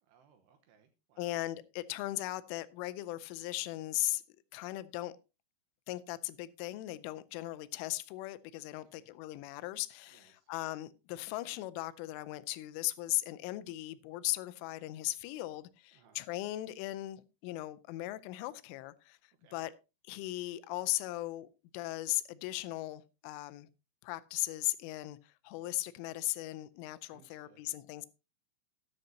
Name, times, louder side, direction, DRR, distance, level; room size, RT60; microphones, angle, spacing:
voice 1, 0.1-1.4 8.7-9.1 10.1-10.5 15.9-16.2 19.4-19.7 27.1-27.7, right 7 dB, 75° right, 2.9 m, -66 dB
voice 2, 1.2-4.2 4.5-5.1 5.9-19.7 20.1-21.5 21.7-23.7 24.0-28.1, left 17 dB, 90° left, 3.2 m, -38 dB
13.0 x 11.5 x 2.8 m
omnidirectional pair, 5.5 m